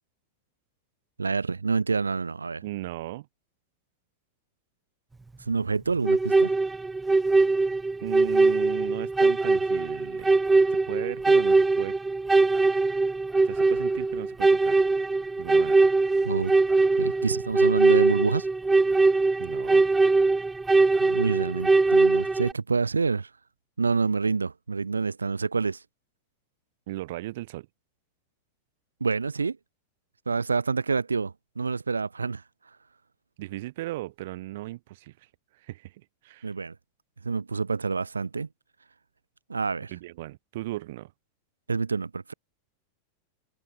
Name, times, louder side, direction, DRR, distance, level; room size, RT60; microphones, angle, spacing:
voice 1, 1.2-2.6 5.5-6.5 16.2-16.5 17.0-18.5 21.0-23.3 23.8-25.8 29.0-29.6 30.3-32.4 36.4-36.7 37.2-38.5 39.5-39.9 41.7-42.3, right 4 dB, 75° right, 2.0 m, -27 dB
voice 2, 2.6-3.3 8.0-10.3 10.7-12.0 13.4-14.8 15.4-15.9 19.4-19.8 26.9-27.7 33.4-35.3 35.5-36.5 39.9-41.1, right 17 dB, 55° right, 2.4 m, -37 dB
sound 1, 6.0-22.5, right 3 dB, 10° right, 1.2 m, -22 dB
figure-of-eight pair, 90°, 0 cm